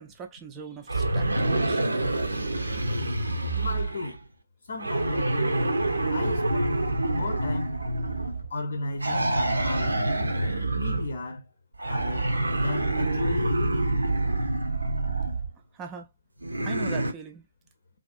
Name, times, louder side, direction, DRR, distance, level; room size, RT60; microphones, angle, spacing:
voice 1, 0.0-1.8 15.7-16.1 16.6-17.5, right 6 dB, 15° right, 0.4 m, -41 dB
sound 1, 0.9-4.2 4.8-8.5 9.0-11.2 11.8-15.5 16.4-17.1, right 2 dB, 75° right, 0.6 m, -27 dB
voice 2, 3.5-4.2 4.7-5.8 6.1-7.8 8.5-10.0 10.8-11.4 11.9-12.3 12.6-14.0, left 2 dB, 55° left, 0.6 m, -34 dB
2.5 x 2.4 x 2.5 m
figure-of-eight pair, 140°, 0 cm